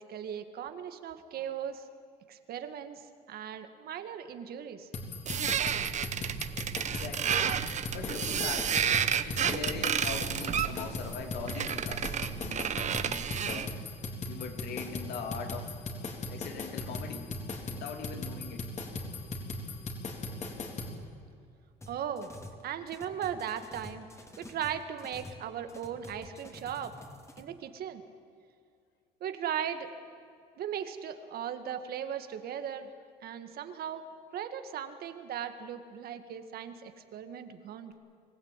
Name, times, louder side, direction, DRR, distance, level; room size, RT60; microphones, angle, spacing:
voice 1, 0.0-1.8 2.3-4.9 21.9-22.3 22.6-24.1 24.4-26.9 27.4-28.0 29.2-30.0 30.6-32.9 33.2-34.1 34.3-37.9, right 9 dB, 65° right, 9 dB, 1.9 m, -38 dB
sound 1, 4.9-20.9, left 2 dB, 45° left, 3.9 m, -38 dB
sound 2, 5.3-13.7, right 8 dB, 45° right, 1.0 m, -31 dB
voice 2, 6.9-7.4 7.9-8.9 9.2-13.7 14.3-15.7 16.3-17.3 17.7-18.7, left 6 dB, 75° left, 5 dB, 2.8 m, -41 dB
sound 3, 21.8-22.6 22.9-25.4 25.7-27.4, left 1 dB, 15° left, 2.8 m, -48 dB
25.0 x 16.0 x 9.1 m, 2.4 s
cardioid pair, 110°, 17 cm